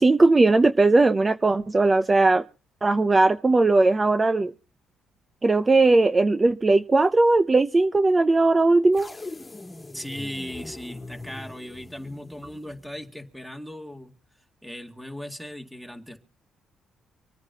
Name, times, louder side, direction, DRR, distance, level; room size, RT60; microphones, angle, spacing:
voice 1, 0.0-2.4 2.8-4.5 5.4-9.1, right 3 dB, 25° right, 0.6 m, -19 dB
sound 1, 8.9-13.2, left 2 dB, 20° left, 2.1 m, -42 dB
voice 2, 9.9-14.1 14.6-16.2, left 1 dB, 5° right, 2.2 m, -37 dB
26.0 x 9.5 x 2.8 m
cardioid pair, 90°, 0 cm